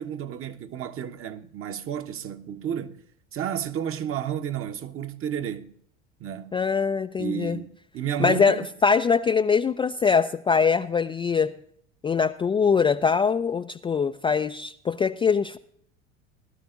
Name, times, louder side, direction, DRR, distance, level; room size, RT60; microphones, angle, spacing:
voice 1, 0.0-3.0 3.3-5.7 6.2-6.6 7.2-8.7, right 9 dB, 40° right, 1.1 m, -32 dB
voice 2, 6.5-7.6 8.2-8.6 8.8-11.5 12.0-15.6, left 5 dB, 15° left, 0.4 m, -22 dB
19.5 x 12.0 x 2.5 m
hypercardioid pair, 75°, 35 cm